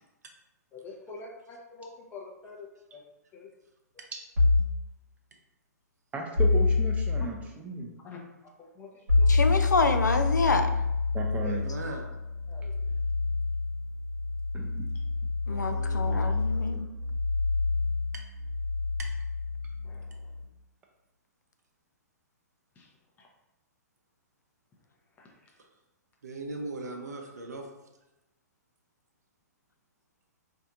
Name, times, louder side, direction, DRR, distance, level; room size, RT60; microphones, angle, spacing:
voice 1, 0.7-3.0 3.3-3.5 7.2-7.3 8.0-9.4 11.4-11.6 12.5-13.0 19.8-20.3 22.8-22.9 23.2-23.3 25.2-25.5, left 3 dB, 20° left, -1 dB, 0.7 m, -46 dB
sound 1, 4.4-4.8 6.4-7.3 9.1-20.4, left 3 dB, 85° right, 1.1 m, -27 dB
voice 2, 6.1-7.9 11.1-11.6 14.5-14.9, right 2 dB, 15° right, 1 dB, 0.5 m, -35 dB
voice 3, 9.3-10.7 15.5-16.9, left 3 dB, 90° left, 6 dB, 0.3 m, -27 dB
voice 4, 11.6-12.1 15.5-16.9 18.1-18.2 19.0-19.1 25.6-25.7 26.2-27.7, right 2 dB, 70° right, 3 dB, 0.7 m, -40 dB
4.2 x 2.7 x 2.4 m, 0.99 s
figure-of-eight pair, 115°, 9 cm